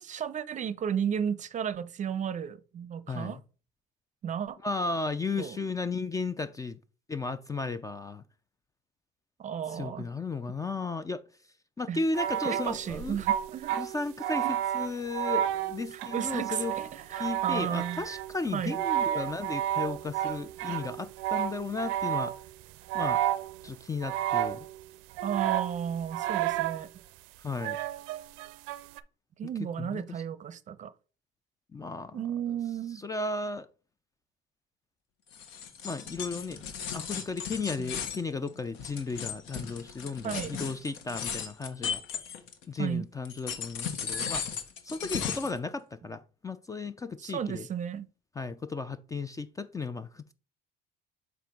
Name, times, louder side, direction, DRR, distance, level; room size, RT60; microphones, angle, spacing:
voice 1, 0.0-3.4 4.2-4.6 5.4-5.6 9.4-10.1 11.9-12.0 12.4-13.8 14.4-14.5 15.9-18.0 18.5-18.8 25.2-26.9 29.4-30.9 32.1-33.0 37.8-37.9 40.2-40.6 42.8-43.1 47.2-48.1, right 8 dB, 40° right, 0.6 m, -34 dB
voice 2, 3.1-3.4 4.6-6.8 7.1-8.2 9.7-11.2 11.8-13.2 13.8-14.5 14.7-16.7 17.2-22.3 22.9-23.2 23.6-24.7 27.4-27.8 29.8-30.0 31.7-32.2 33.0-33.7 35.8-36.6 36.9-42.0 42.7-44.4 44.8-47.7 48.4-50.3, left 3 dB, 15° left, 0.4 m, -34 dB
sound 1, 12.1-22.5 22.9-23.7 24.0-24.8 25.2-26.8 27.6-29.0, right 12 dB, 85° right, 0.5 m, -31 dB
sound 2, 35.3-42.8 43.2-45.6, left 7 dB, 75° left, 1.1 m, -36 dB
7.3 x 2.5 x 5.2 m
cardioid pair, 110°, 20 cm